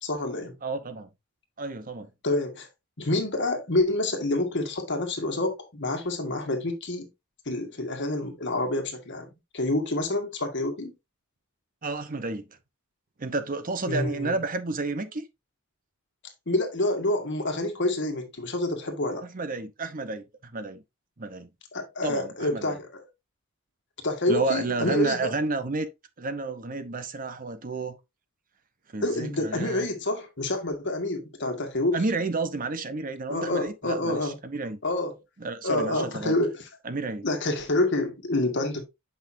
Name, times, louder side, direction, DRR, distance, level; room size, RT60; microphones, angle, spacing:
voice 1, 0.0-0.6 2.2-2.7 3.0-7.1 7.5-10.9 13.9-14.4 16.5-19.3 21.7-23.1 24.0-25.3 29.0-32.0 33.3-34.4 34.8-35.2 35.6-36.7 37.2-38.8, left 2 dB, 55° left, 1.7 m, -28 dB
voice 2, 0.6-1.1 1.6-2.1 11.8-12.4 13.2-15.2 19.2-20.2 20.5-20.8 21.2-21.5 22.0-22.8 24.3-25.9 26.2-28.0 28.9-29.9 31.9-34.8 35.4-36.3 36.8-37.2, right 3 dB, 40° right, 0.8 m, -31 dB
8.1 x 5.5 x 2.6 m
head